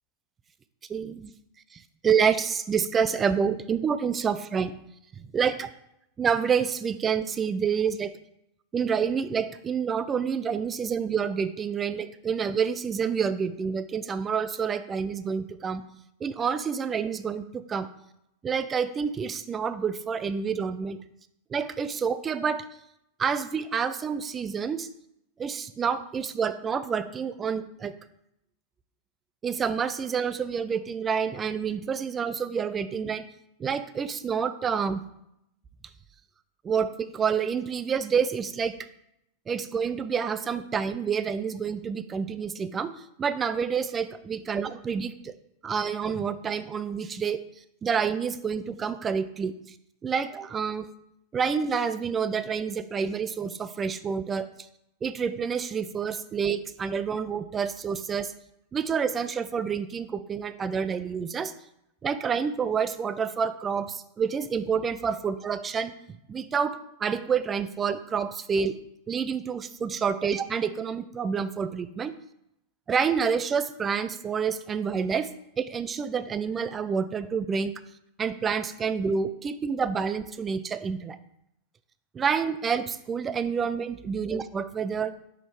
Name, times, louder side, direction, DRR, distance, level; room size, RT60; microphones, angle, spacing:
voice 1, 0.9-1.3 2.0-4.7 5.2-5.7 6.2-8.1 8.7-15.8 16.2-17.9 18.4-21.0 21.5-22.6 23.2-24.9 25.4-27.9 29.4-33.3 33.6-35.0 36.6-38.8 39.5-42.9 43.2-45.3 45.6-47.4 47.8-49.6 50.0-50.9 51.3-54.5 55.0-58.3 58.7-61.5 62.0-65.9 66.3-68.7 69.1-72.1 72.9-75.3 75.6-77.7 78.2-81.2 82.1-85.1, right 6 dB, 20° right, 12 dB, 0.4 m, -28 dB
5.6 x 3.9 x 4.7 m, 0.80 s
figure-of-eight pair, 90°, 0 cm